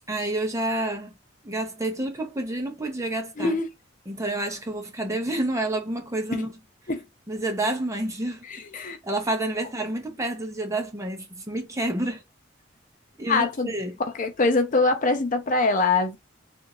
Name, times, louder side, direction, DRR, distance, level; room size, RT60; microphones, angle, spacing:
voice 1, 0.1-1.1 1.4-3.6 4.1-6.6 7.3-8.4 9.0-12.2 13.2-14.0, right 1 dB, 15° right, 0.9 m, -29 dB
voice 2, 3.4-3.7 6.3-6.4 6.9-7.0 8.7-9.0 13.3-13.7 14.1-16.2, left 3 dB, 45° left, 0.6 m, -23 dB
3.5 x 2.6 x 2.9 m
head